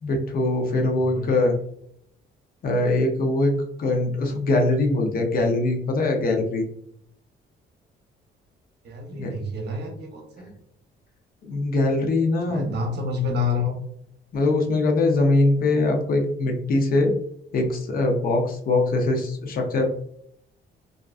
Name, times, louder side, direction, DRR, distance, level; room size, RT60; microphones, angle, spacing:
voice 1, 0.0-1.5 2.6-6.7 9.1-9.3 11.5-12.7 14.3-17.1 17.5-19.9, left 2 dB, 45° left, 2 dB, 0.6 m, -22 dB
voice 2, 0.9-1.5 8.8-10.5 12.5-13.8, left 4 dB, 55° right, 3 dB, 0.7 m, -29 dB
2.4 x 2.2 x 2.3 m, 0.71 s
cardioid pair, 90°, 20 cm